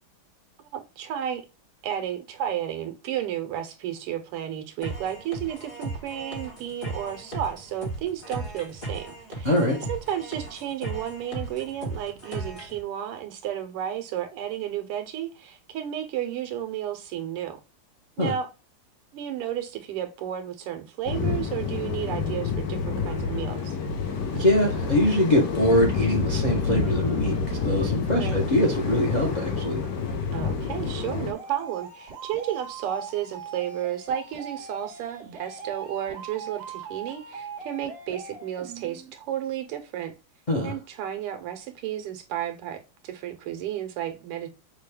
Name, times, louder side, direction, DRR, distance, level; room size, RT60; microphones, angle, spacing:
voice 1, 0.7-1.4 1.8-9.5 9.9-17.6 18.2-18.5 19.1-23.8 28.2-28.4 30.3-40.1 40.6-44.5, right 10 dB, 85° right, 1.7 m, -32 dB
sound 1, 4.8-12.8, right 2 dB, 30° left, 0.9 m, -36 dB
voice 2, 9.4-9.8 18.2-18.3 24.3-29.8 40.5-40.7, left 1 dB, 80° left, 0.4 m, -23 dB
sound 2, 21.1-31.3, left 5 dB, 65° left, 1.2 m, -28 dB
sound 3, 23.1-39.1, right 4 dB, 55° right, 1.7 m, -41 dB
6.4 x 2.3 x 3.3 m
omnidirectional pair, 2.4 m